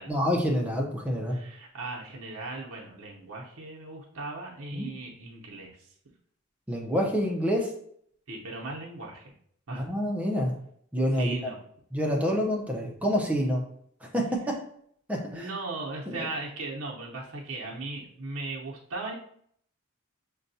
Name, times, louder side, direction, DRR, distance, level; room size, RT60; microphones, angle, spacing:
voice 1, 0.1-1.4 4.7-4.9 6.7-7.7 9.7-10.5 10.9-11.5 11.9-13.6 14.0-14.5 15.1-15.5 16.1-16.3, equal, 5° right, -1 dB, 0.6 m, -27 dB
voice 2, 1.3-5.7 8.3-9.3 9.7-9.9 11.2-11.6 15.3-19.2, right 2 dB, 85° right, -2 dB, 0.8 m, -37 dB
6.6 x 2.3 x 2.7 m, 0.65 s
head